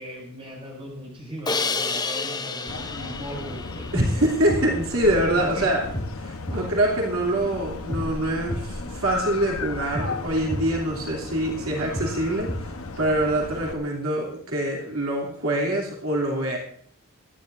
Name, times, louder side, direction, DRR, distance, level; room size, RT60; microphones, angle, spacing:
voice 1, 0.0-4.3 5.2-5.7 6.5-6.7 11.6-11.9, equal, 25° right, -1 dB, 6.3 m, -37 dB
Crash cymbal, 1.5-4.5, left 4 dB, 20° left, 0.7 m, -30 dB
sound 1, 2.7-13.7, left 3 dB, 80° left, 1.1 m, -35 dB
sound 2, 3.6-13.4, equal, 35° left, 1.7 m, -35 dB
voice 2, 3.9-5.8 6.2-12.5 13.0-16.6, right 1 dB, 80° right, -1 dB, 2.9 m, -24 dB
25.5 x 10.5 x 2.6 m, 0.63 s
head